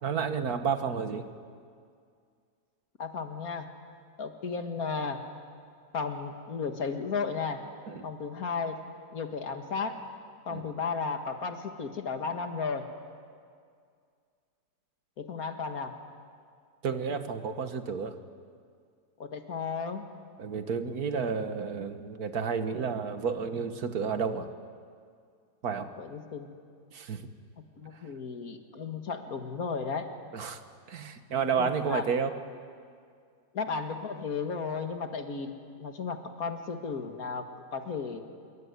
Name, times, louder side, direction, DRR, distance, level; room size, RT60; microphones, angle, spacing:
voice 1, 0.0-1.3 7.9-8.1 10.5-10.6 16.8-18.2 20.4-24.5 25.6-25.9 26.9-27.3 30.3-30.6 30.9-32.3, right 6 dB, 55° right, 9 dB, 1.8 m, -31 dB
voice 2, 3.0-3.7 4.2-5.2 5.9-7.6 8.0-8.8 9.1-10.0 10.5-12.9 15.2-16.0 19.2-20.0 26.0-26.5 27.8-30.1 31.6-32.0 33.5-35.5 35.8-38.2, left 5 dB, 55° left, 6 dB, 2.2 m, -34 dB
26.5 x 22.5 x 9.7 m, 2.2 s
omnidirectional pair, 1.9 m